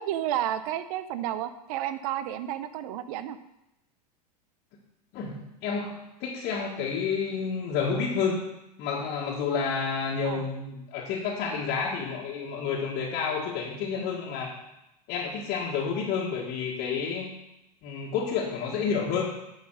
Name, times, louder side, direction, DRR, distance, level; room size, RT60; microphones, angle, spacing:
voice 1, 0.0-3.4 10.2-10.5, right 11 dB, 60° right, 12 dB, 0.7 m, -31 dB
voice 2, 5.1-8.4 8.8-14.5 15.1-17.3 17.8-19.3, left 5 dB, 50° left, -5 dB, 1.6 m, -30 dB
10.0 x 4.9 x 6.2 m, 0.89 s
hypercardioid pair, 95°, 21 cm